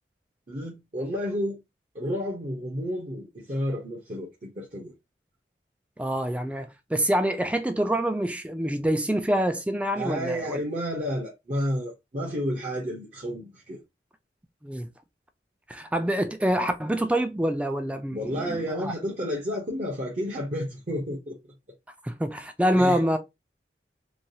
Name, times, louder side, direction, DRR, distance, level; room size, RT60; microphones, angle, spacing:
voice 1, 0.5-1.6 1.9-4.9 10.0-13.8 18.1-21.4 22.7-23.0, equal, 45° right, 0.7 m, -31 dB
voice 2, 6.0-10.6 14.6-14.9 15.7-18.9 22.0-23.2, equal, 5° right, 0.3 m, -26 dB
3.1 x 2.3 x 2.7 m
head